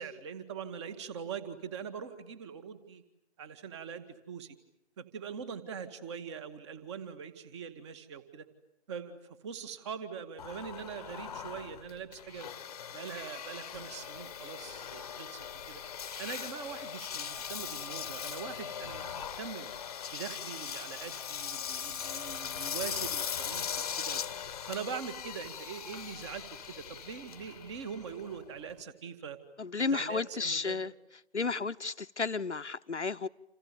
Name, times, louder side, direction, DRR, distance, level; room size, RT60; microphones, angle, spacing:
voice 1, 0.0-3.0 3.4-4.5 5.0-8.5 8.9-12.5 12.9-15.8 16.2-19.7 20.1-24.2 24.7-29.4 29.9-30.8, right 7 dB, 25° right, 2.0 m, -42 dB
Engine, 10.4-28.8, left 8 dB, 35° left, 1.1 m, -40 dB
voice 2, 29.6-30.9 31.3-33.3, left 4 dB, 80° left, 1.0 m, -32 dB
29.5 x 28.5 x 7.0 m
figure-of-eight pair, 140°, 34 cm